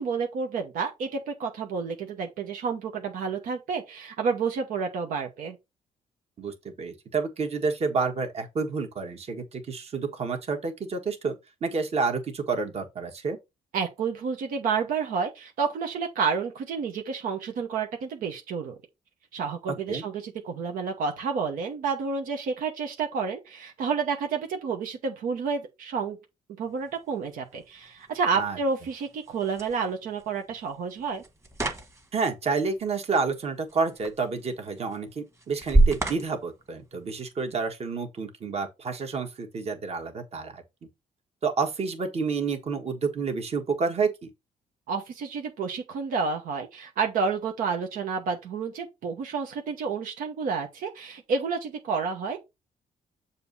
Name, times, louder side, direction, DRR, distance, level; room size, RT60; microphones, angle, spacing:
voice 1, 0.0-5.6 13.7-18.8 19.3-26.2 26.6-31.2 44.9-52.4, right 5 dB, 80° right, 1.0 m, -30 dB
voice 2, 6.4-11.3 11.6-13.4 19.9-20.0 28.4-28.6 32.1-40.6 41.4-44.3, right 4 dB, 45° right, 1.5 m, -29 dB
sound 1, 26.6-37.6, right 2 dB, 20° right, 1.4 m, -31 dB
6.8 x 2.8 x 5.3 m
cardioid pair, 85°, 14 cm